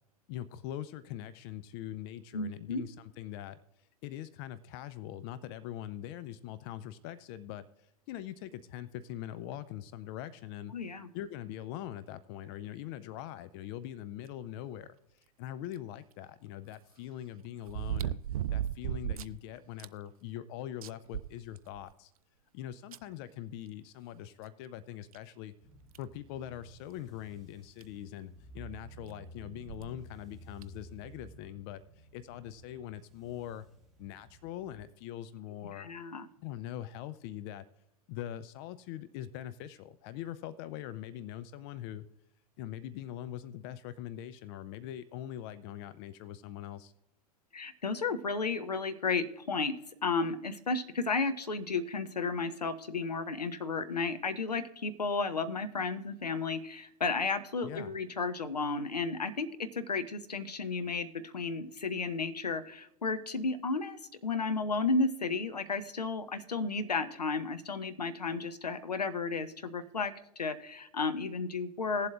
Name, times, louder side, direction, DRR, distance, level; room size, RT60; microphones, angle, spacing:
voice 1, 0.3-3.6 4.0-10.7 11.1-15.0 15.4-18.2 18.5-22.1 22.5-25.5 26.0-33.7 34.0-35.9 36.4-37.7 38.1-42.1 42.6-46.9 57.6-58.0, left 12 dB, 40° left, 15 dB, 0.5 m, -42 dB
voice 2, 2.3-2.8 10.7-11.1 35.7-36.3 47.5-72.1, left 4 dB, 80° left, 10 dB, 0.9 m, -33 dB
sound 1, 15.7-15.8 17.7-19.4 19.8-19.9 20.4-20.5 20.8-21.9 22.9-23.0 24.5-24.6 25.1-25.2 25.9-26.2 27.5-27.6 27.8-27.9 29.6-29.9 30.6-30.7, right 11 dB, 60° right, 0.4 m, -35 dB
sound 2, 25.6-34.8, right 2 dB, ahead, 1.7 m, -54 dB
19.0 x 7.6 x 2.5 m, 0.78 s
figure-of-eight pair, 100°, 20 cm